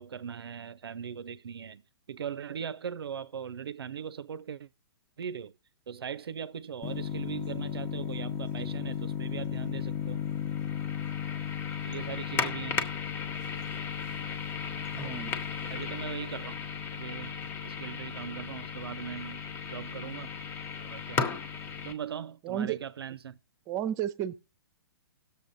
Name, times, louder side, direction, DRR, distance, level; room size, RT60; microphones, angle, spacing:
voice 1, 0.0-1.8 2.1-4.7 5.2-5.5 5.9-10.2 11.8-12.8 15.7-16.6 16.9-19.4 19.7-20.3 20.8-21.2 21.8-23.4, right 8 dB, 80° right, 0.4 m, -39 dB
sound 1, 6.8-21.9, left 7 dB, 20° left, 0.7 m, -35 dB
voice 2, 14.9-15.3 22.5-22.8 23.7-24.4, right 10 dB, 25° right, 0.6 m, -32 dB
17.5 x 6.8 x 2.6 m
hypercardioid pair, 125°, 13 cm